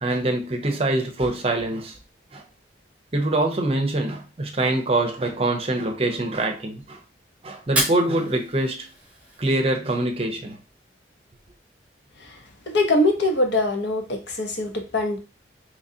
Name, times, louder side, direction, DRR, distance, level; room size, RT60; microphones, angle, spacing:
voice 1, 0.0-2.0 2.3-2.4 3.1-7.0 7.4-8.9 9.4-10.6, right 2 dB, 35° right, 0.6 m, -24 dB
Fire, 7.6-9.6, right 1 dB, 5° right, 1.0 m, -30 dB
voice 2, 12.7-15.2, left 1 dB, 80° left, 0.8 m, -23 dB
3.8 x 3.0 x 2.7 m
head